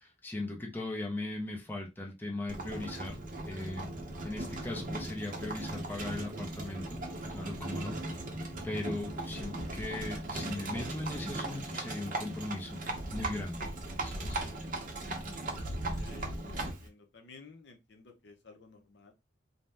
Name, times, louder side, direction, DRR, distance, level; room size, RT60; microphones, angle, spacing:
voice 1, 0.0-3.2 3.5-3.9 4.2-7.0 7.3-8.0 8.6-12.8 13.1-13.7 14.0-14.4, left 2 dB, 10° left, 0.5 m, -38 dB
Livestock farm animals working animals, 2.5-16.9, right 1 dB, 45° right, 0.6 m, -38 dB
voice 2, 16.0-19.1, left 3 dB, 65° left, 0.6 m, -54 dB
2.7 x 2.1 x 3.3 m
head